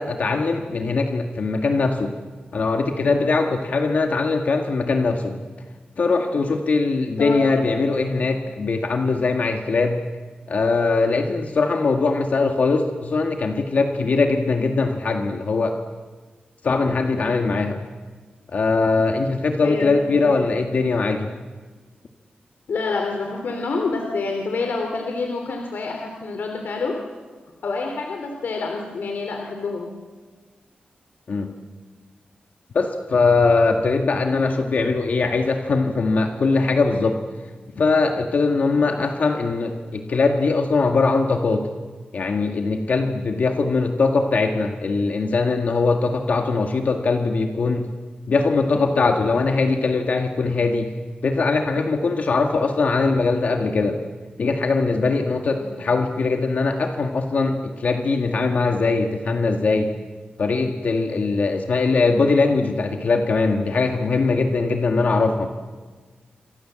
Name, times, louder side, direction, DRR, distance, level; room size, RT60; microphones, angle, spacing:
voice 1, 0.0-2.2 2.5-5.4 6.0-10.0 10.5-15.8 16.6-17.8 18.5-21.3 31.3-31.6 32.7-37.2 37.8-41.7 42.1-47.9 48.3-50.9 51.2-54.0 54.4-59.9 60.4-65.5, left 3 dB, 55° left, 4 dB, 1.8 m, -21 dB
voice 2, 7.2-7.9 8.2-8.4 19.6-20.4 22.7-27.0 27.6-29.9 55.5-55.9, left 3 dB, 85° left, 3 dB, 3.2 m, -28 dB
28.0 x 26.0 x 7.6 m, 1.4 s
wide cardioid pair, 170°, 3 cm